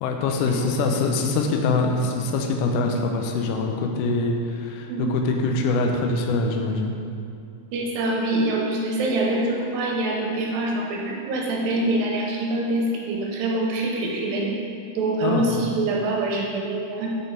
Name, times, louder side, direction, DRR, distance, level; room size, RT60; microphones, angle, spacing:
voice 1, 0.0-6.9 15.2-15.6, left 3 dB, 80° left, 2 dB, 1.9 m, -24 dB
voice 2, 4.9-5.2 7.7-14.5 15.0-17.2, right 2 dB, 80° right, -1 dB, 2.4 m, -25 dB
6.8 x 5.2 x 4.4 m, 2.4 s
omnidirectional pair, 4.3 m